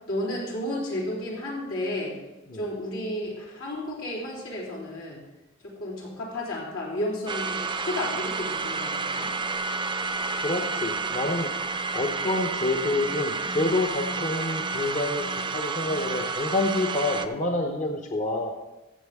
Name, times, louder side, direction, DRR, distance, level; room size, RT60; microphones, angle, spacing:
voice 1, 0.1-2.2 2.5-5.2 5.6-9.3 14.2-14.3, left 1 dB, 85° left, -5 dB, 3.4 m, -32 dB
sound 1, 7.3-17.3, right 4 dB, 25° right, 0.5 m, -30 dB
voice 2, 10.3-11.5 11.9-18.5, left 2 dB, 40° left, 2 dB, 0.8 m, -28 dB
15.0 x 7.1 x 3.6 m, 1.0 s
head